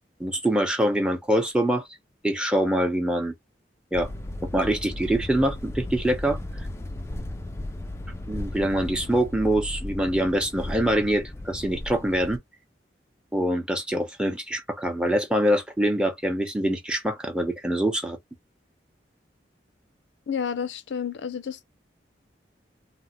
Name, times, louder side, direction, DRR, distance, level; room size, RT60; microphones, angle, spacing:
voice 1, 0.2-1.9 2.2-3.3 3.9-4.1 4.4-6.4 8.3-12.4 13.3-18.2, right 1 dB, 5° right, 0.7 m, -24 dB
sound 1, 3.9-12.4, left 1 dB, 15° left, 0.3 m, -35 dB
voice 2, 20.3-21.6, left 7 dB, 85° left, 0.4 m, -30 dB
3.3 x 2.0 x 2.8 m
head